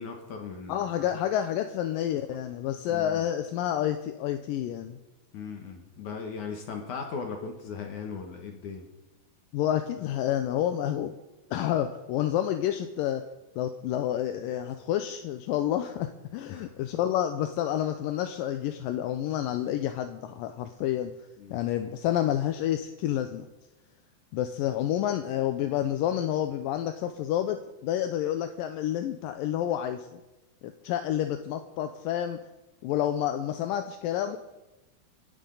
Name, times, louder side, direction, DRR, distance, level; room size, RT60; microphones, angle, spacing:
voice 1, 0.0-1.1 2.9-3.3 5.3-8.9 10.0-10.1 16.5-16.7 21.4-21.6, left 5 dB, 60° left, 3 dB, 2.5 m, -38 dB
voice 2, 0.7-5.0 9.5-11.1 11.5-13.2 13.6-21.1 21.5-23.5 24.3-30.2 30.6-32.4 32.8-34.4, left 11 dB, 80° left, 7 dB, 2.3 m, -29 dB
28.5 x 10.5 x 3.9 m, 1.1 s
omnidirectional pair, 4.3 m